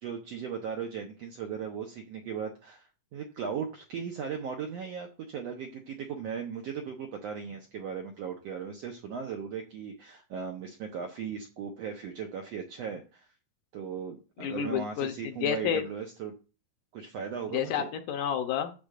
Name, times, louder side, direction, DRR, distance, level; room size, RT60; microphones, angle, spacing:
voice 1, 0.0-2.8 3.1-13.3 13.7-16.3 16.9-17.9, right 7 dB, 75° right, 3 dB, 1.5 m, -37 dB
voice 2, 14.4-15.8 17.5-18.9, left 8 dB, 75° left, 7 dB, 2.2 m, -30 dB
10.0 x 7.6 x 2.5 m, 0.34 s
omnidirectional pair, 4.1 m